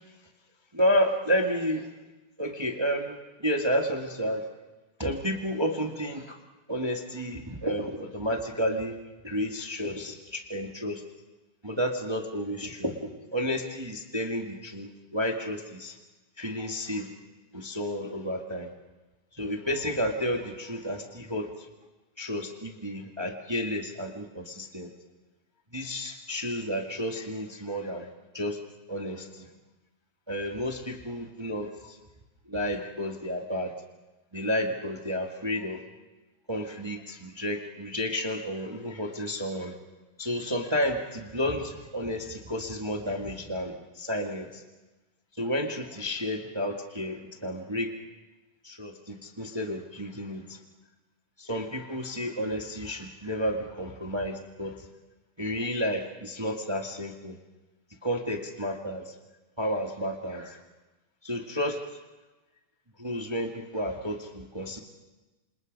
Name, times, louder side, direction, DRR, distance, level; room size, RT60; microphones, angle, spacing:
voice 1, 0.7-1.9 2.4-4.4 5.0-6.4 6.7-9.0 9.2-11.0 11.6-15.9 16.4-17.1 17.5-18.7 19.4-21.5 22.2-24.9 25.7-28.1 28.3-28.6 28.9-29.5 30.3-31.9 32.5-33.7 34.3-35.8 36.5-39.7 40.2-44.6 45.4-47.9 48.6-50.6 51.4-54.7 55.4-57.3 58.0-59.0 59.6-60.6 61.2-61.8 63.0-64.8, equal, 25° right, 2 dB, 0.6 m, -31 dB
28.0 x 27.5 x 5.4 m, 1.1 s
omnidirectional pair, 4.2 m